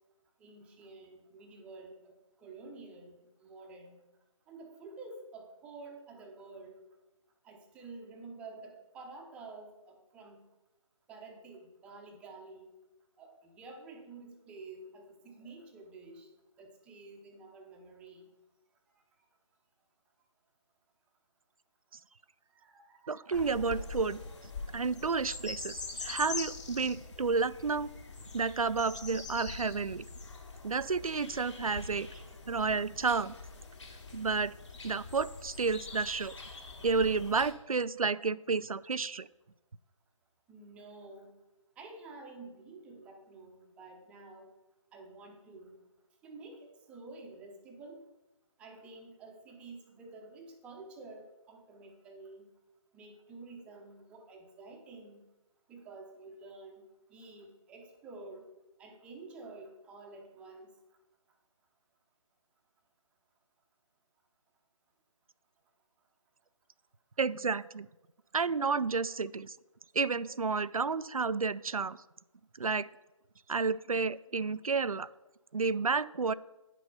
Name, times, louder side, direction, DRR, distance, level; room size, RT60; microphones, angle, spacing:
voice 1, 0.4-4.0 4.5-6.7 7.4-10.4 11.1-12.7 13.2-16.3 16.6-18.3 22.5-23.8 40.5-41.3 41.8-44.5 44.9-45.8 46.2-48.0 48.6-52.5 52.9-55.2 55.7-56.8 57.1-58.5 58.8-60.7, right 3 dB, 5° right, 2 dB, 0.7 m, -50 dB
voice 2, 23.1-24.2 24.7-27.9 28.3-30.1 30.6-32.1 32.5-33.3 34.1-34.5 34.8-36.4 36.8-39.3 67.2-67.9 68.3-69.5 69.9-72.0 72.6-72.9 73.5-75.1 75.5-76.3, right 4 dB, 85° right, 16 dB, 0.4 m, -31 dB
sound 1, 23.3-37.5, left 4 dB, 60° left, 2.2 m, -44 dB
9.4 x 6.1 x 5.5 m, 0.99 s
figure-of-eight pair, 150°, 18 cm